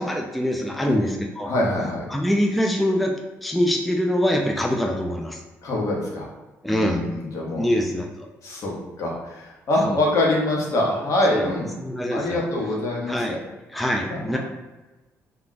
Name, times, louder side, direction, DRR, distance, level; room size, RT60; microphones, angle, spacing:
voice 1, 0.0-1.5 2.1-3.1 3.4-5.4 6.6-7.0 7.6-8.1 9.9-10.0 11.3-11.5 11.8-12.4 13.1-13.4 13.7-14.4, equal, ahead, 1 dB, 0.3 m, -24 dB
voice 2, 1.4-2.0 5.6-6.3 6.7-7.7 8.4-11.7 12.1-13.4 14.1-14.4, left 1 dB, 60° left, -2 dB, 0.9 m, -24 dB
2.3 x 2.1 x 3.8 m, 1.1 s
cardioid pair, 80°, 6 cm